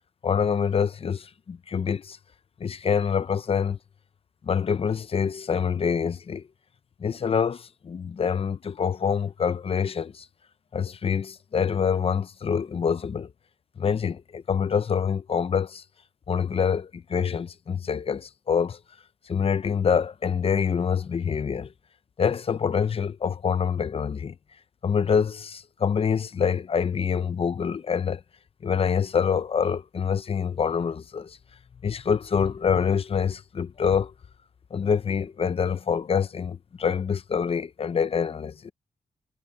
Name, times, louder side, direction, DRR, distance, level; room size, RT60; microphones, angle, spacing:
voice 1, 0.2-2.2 2.6-3.8 4.4-6.4 7.0-10.3 10.7-13.3 13.8-15.8 16.3-18.8 19.3-21.7 22.2-24.3 24.8-28.2 28.6-31.4 31.8-34.1 34.7-38.7, left 6 dB, 45° left, 0.7 m, -26 dB
cardioid pair, 95°, 13 cm